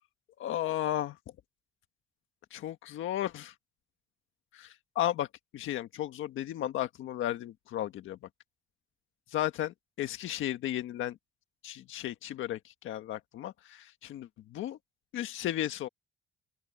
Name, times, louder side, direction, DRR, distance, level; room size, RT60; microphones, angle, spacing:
voice 1, 0.4-1.2 2.5-3.5 4.5-5.3 5.5-8.2 9.3-11.2 11.6-14.3 14.5-14.8 15.1-15.9, left 12 dB, 80° left, 1.6 m, -34 dB
open air
cardioid pair, 90°, 20 cm